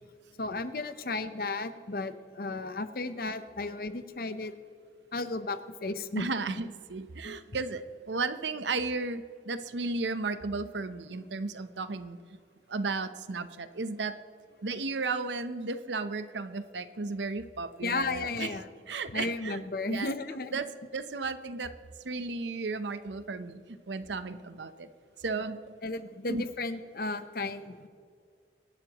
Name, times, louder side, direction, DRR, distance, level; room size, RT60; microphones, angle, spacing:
voice 1, 0.4-4.5 5.1-6.3 7.2-7.4 17.8-18.7 19.1-20.6 25.8-27.9, left 3 dB, 55° left, 11 dB, 0.8 m, -34 dB
voice 2, 6.2-12.4 12.7-14.2 14.6-18.5 18.9-19.6 19.9-20.1 20.5-21.7 22.0-24.9 25.2-25.6 26.3-26.4, right 3 dB, 90° right, 11 dB, 0.8 m, -34 dB
24.5 x 11.5 x 3.0 m, 2.3 s
head